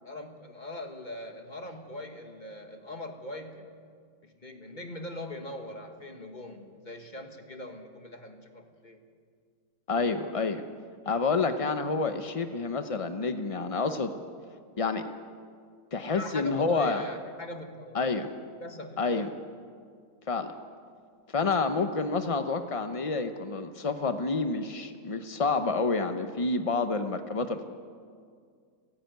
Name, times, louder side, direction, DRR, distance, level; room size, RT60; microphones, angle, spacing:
voice 1, 0.0-3.7 4.2-9.0 16.1-18.0 18.6-19.3, left 1 dB, 25° left, 4 dB, 1.6 m, -41 dB
voice 2, 9.9-10.6 11.1-14.1 14.8-15.0 15.9-17.0 17.9-18.3 19.0-19.3 20.3-20.5 21.3-27.6, left 4 dB, 50° left, 8 dB, 0.3 m, -28 dB
30.0 x 10.0 x 9.3 m, 2.1 s
omnidirectional pair, 1.9 m